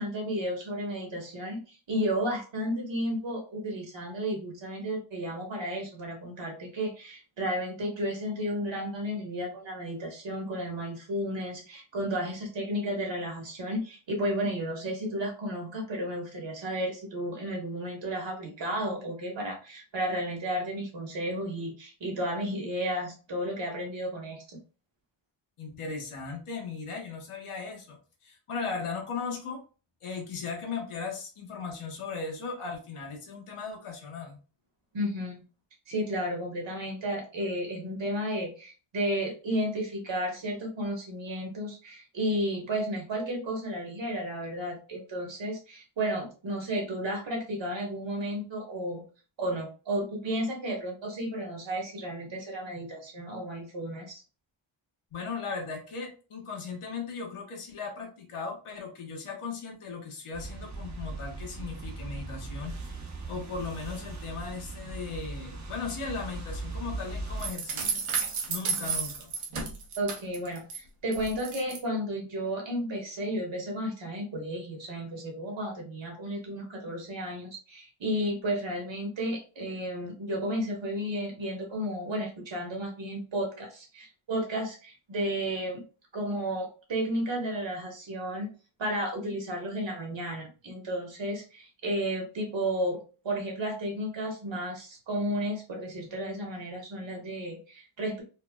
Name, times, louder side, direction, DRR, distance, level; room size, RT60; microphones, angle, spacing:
voice 1, 0.0-24.4 34.9-35.4 35.9-49.0 49.4-54.2 68.8-68.9 70.0-85.8 86.1-88.5 88.8-93.0 93.2-98.2, equal, 60° right, 1 dB, 1.3 m, -33 dB
voice 2, 25.6-29.6 30.0-34.4 55.1-62.8 63.3-68.0 68.5-69.3, left 5 dB, 90° left, 1 dB, 1.1 m, -37 dB
sound 1, 60.3-67.5, right 2 dB, 35° right, 0.6 m, -39 dB
sound 2, 67.4-70.8 71.1-71.8, right 5 dB, 80° right, 0.8 m, -32 dB
4.3 x 2.0 x 2.2 m, 0.35 s
wide cardioid pair, 140°, 49 cm